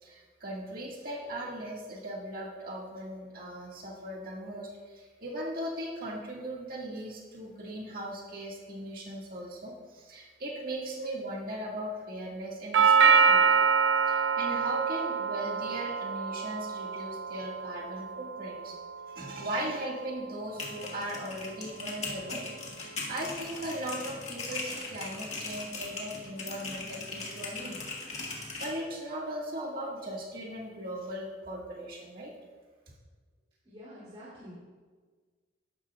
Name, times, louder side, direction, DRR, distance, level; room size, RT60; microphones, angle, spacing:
voice 1, 0.0-13.6 14.1-18.8 19.1-22.5 22.8-27.8 28.6-32.3, right 1 dB, 50° right, -3 dB, 2.0 m, -38 dB
Doorbell, 12.7-20.8, right 5 dB, 85° right, 0.4 m, -26 dB
sound 1, 20.4-28.7, left 3 dB, 35° left, 1.9 m, -39 dB
voice 2, 33.6-34.6, equal, 30° right, -11 dB, 3.2 m, -48 dB
12.5 x 11.5 x 2.4 m, 1.5 s
head